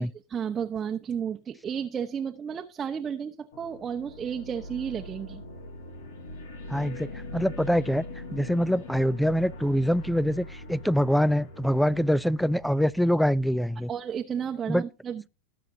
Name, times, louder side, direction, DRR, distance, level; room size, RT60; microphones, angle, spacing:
voice 1, 0.0-5.4 13.9-15.3, right 7 dB, 20° right, 0.9 m, -32 dB
sound 1, 3.5-13.7, left 1 dB, 85° left, 3.6 m, -42 dB
voice 2, 6.7-8.0 8.3-13.9 14.7-14.8, equal, ahead, 0.5 m, -24 dB
19.5 x 7.5 x 2.7 m
hypercardioid pair, 120°, 0 cm